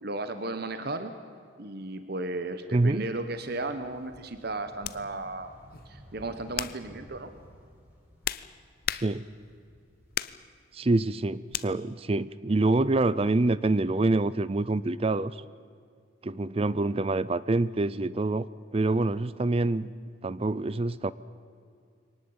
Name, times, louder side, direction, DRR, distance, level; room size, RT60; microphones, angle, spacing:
voice 1, 0.0-1.1 1.6-5.5 5.8-7.3, right 2 dB, 55° right, 9 dB, 1.2 m, -35 dB
sound 1, 2.6-10.7 11.0-12.2, equal, 10° right, 4.4 m, -54 dB
voice 2, 2.7-3.0 8.9-9.2 10.7-15.4 16.2-19.9 20.2-21.1, right 2 dB, 30° right, 18 dB, 0.5 m, -26 dB
sound 2, 3.5-3.7 4.8-5.0 5.7-6.0 6.5-6.9 7.8-9.5 10.1-10.5 11.5-11.7, left 11 dB, 50° left, 0.6 m, -35 dB
23.5 x 18.5 x 8.7 m, 2.3 s
head